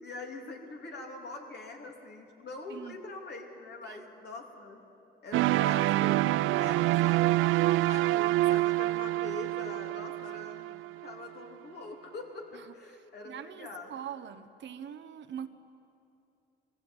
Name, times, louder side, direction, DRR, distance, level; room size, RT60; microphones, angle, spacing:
voice 1, 0.0-4.8 5.2-7.3 7.8-14.0, left 3 dB, 55° left, 1 dB, 3.3 m, -44 dB
sound 1, 5.3-11.2, right 17 dB, 85° right, 0.4 m, -27 dB
voice 2, 13.2-15.5, right 8 dB, 65° right, 10 dB, 1.1 m, -43 dB
21.0 x 15.0 x 8.9 m, 2.7 s
cardioid pair, 90°, 20 cm